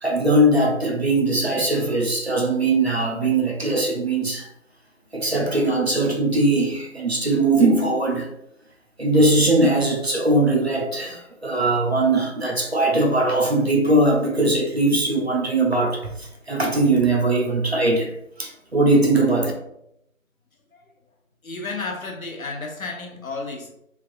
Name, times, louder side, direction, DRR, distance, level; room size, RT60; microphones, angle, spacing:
voice 1, 0.0-4.5 5.1-8.3 9.0-18.1 18.4-19.5, right 2 dB, 50° right, 1 dB, 0.5 m, -20 dB
voice 2, 21.4-23.7, left 3 dB, 85° left, 3 dB, 0.9 m, -32 dB
3.3 x 2.3 x 2.4 m, 0.79 s
figure-of-eight pair, 180°, 40 cm